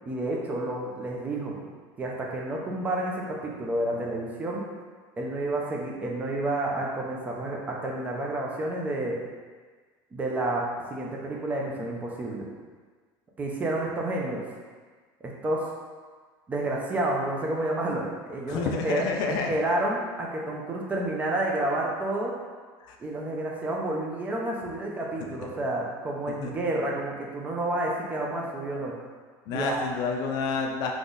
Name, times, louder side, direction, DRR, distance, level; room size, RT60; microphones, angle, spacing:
voice 1, 0.0-1.6 2.0-4.6 5.2-9.2 10.1-12.5 13.4-14.4 15.2-15.7 16.5-22.3 23.0-29.0 29.5-29.8, right 1 dB, 15° right, -2 dB, 0.5 m, -30 dB
voice 2, 18.5-19.5 22.8-23.0 26.3-26.5 29.5-30.9, left 5 dB, 50° left, 2 dB, 0.4 m, -29 dB
4.0 x 3.0 x 3.8 m, 1.5 s
cardioid pair, 175°, 9 cm